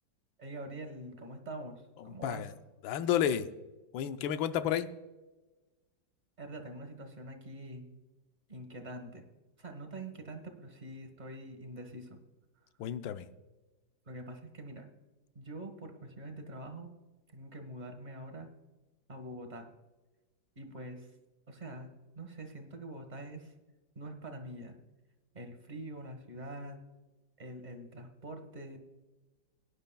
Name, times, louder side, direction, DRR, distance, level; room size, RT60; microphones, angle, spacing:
voice 1, 0.4-2.5 6.4-7.9 8.5-9.2 9.6-12.2 14.1-14.9 15.3-16.9 17.3-18.5 19.1-19.7 20.5-21.1 21.5-23.5 23.9-24.8 25.3-26.8 27.4-28.8, right 1 dB, 25° right, 5 dB, 1.2 m, -45 dB
voice 2, 2.0-2.5 2.8-3.5 3.9-4.9 12.8-13.3, left 10 dB, 85° left, 11 dB, 1.4 m, -31 dB
18.0 x 10.5 x 2.3 m, 1.1 s
omnidirectional pair, 2.1 m